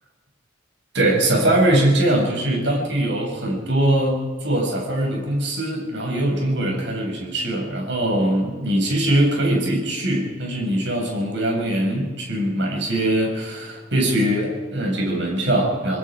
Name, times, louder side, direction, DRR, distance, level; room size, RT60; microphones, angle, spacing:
voice 1, 0.9-16.0, right 1 dB, 70° right, 0 dB, 6.7 m, -22 dB
27.5 x 20.5 x 5.1 m, 1.4 s
head